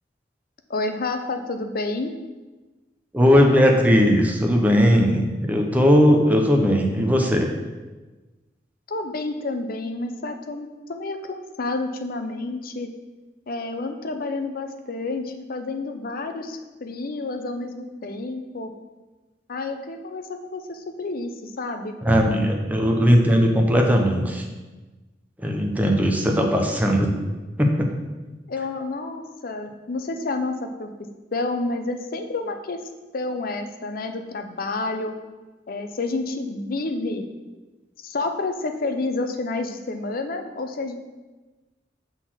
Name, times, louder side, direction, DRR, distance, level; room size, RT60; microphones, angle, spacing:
voice 1, 0.7-2.1 8.9-12.9 13.5-18.7 19.5-21.9 28.5-30.9 31.3-32.8 33.1-35.1 35.7-37.3 38.0-40.9, left 3 dB, 55° left, 7 dB, 0.6 m, -29 dB
voice 2, 3.1-7.5 22.0-24.4 25.4-27.1 27.6-27.9, equal, 10° right, 1 dB, 0.8 m, -18 dB
6.0 x 4.1 x 6.1 m, 1.2 s
head